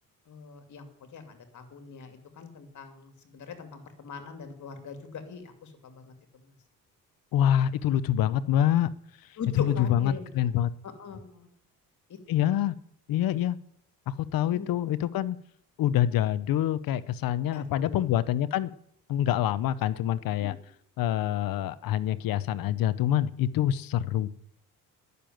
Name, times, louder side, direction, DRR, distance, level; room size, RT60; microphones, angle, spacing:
voice 1, 0.3-0.9 1.1-6.1 6.4-6.5 9.4-10.5 10.8-11.5 12.1-12.6 14.5-14.8 17.5-18.1 20.4-20.6, left 6 dB, 55° left, 8 dB, 2.7 m, -41 dB
voice 2, 7.3-8.9 9.6-10.7 12.3-12.7 13.1-13.6 14.1-15.4 15.8-18.7 19.1-20.5 21.0-24.3, left 11 dB, 70° left, 17 dB, 0.8 m, -26 dB
10.0 x 6.9 x 9.2 m, 0.68 s
cardioid pair, 85°, 36 cm